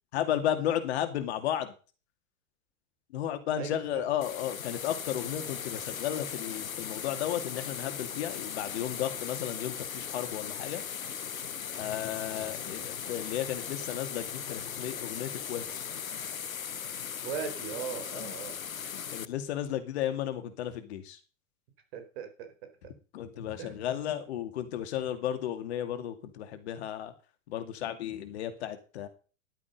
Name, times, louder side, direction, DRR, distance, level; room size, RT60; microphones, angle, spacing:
voice 1, 0.1-1.7 3.1-10.8 11.8-15.8 18.1-18.3 18.8-21.2 23.1-27.1 27.5-29.1, left 11 dB, 55° left, 8 dB, 2.4 m, -34 dB
voice 2, 3.6-4.1 17.2-18.6 21.9-22.7 23.6-23.7, right 7 dB, 50° right, 7 dB, 4.1 m, -38 dB
sound 1, 4.2-19.3, left 8 dB, 90° left, 0.6 m, -38 dB
12.0 x 8.5 x 5.4 m, 0.35 s
figure-of-eight pair, 100°, 40 cm